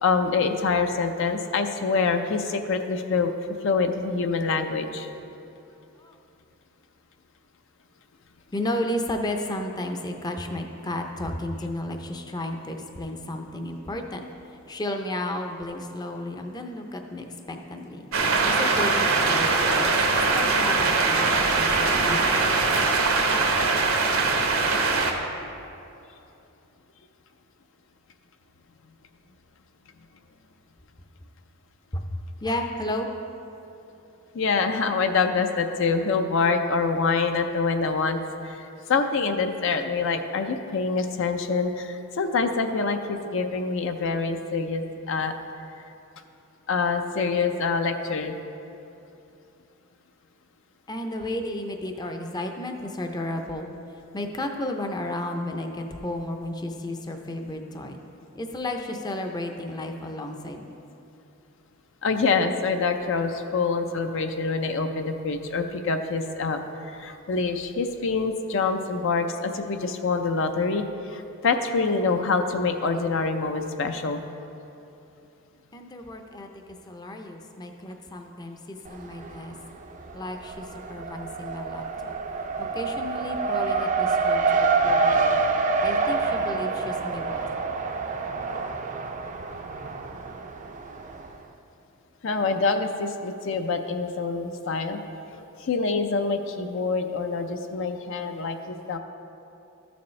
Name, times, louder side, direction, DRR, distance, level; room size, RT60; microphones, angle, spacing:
voice 1, 0.0-3.3 3.6-5.1 34.3-45.3 46.7-48.4 62.0-74.2 92.2-95.0 95.3-99.0, left 4 dB, 65° left, 6 dB, 0.5 m, -26 dB
voice 2, 8.5-14.2 14.7-22.3 31.9-32.0 32.4-33.1 50.9-53.7 54.1-58.0 58.3-60.8 75.7-76.5 76.9-79.5 80.1-82.1 82.6-85.5 85.8-87.5, left 1 dB, 20° left, 4 dB, 0.5 m, -33 dB
sound 1, 18.1-25.1, right 3 dB, 85° right, 1.1 m, -22 dB
Race car auto racing, 78.9-79.6 79.9-91.3, right 4 dB, 35° right, 0.5 m, -27 dB
13.5 x 7.0 x 3.2 m, 2.8 s
head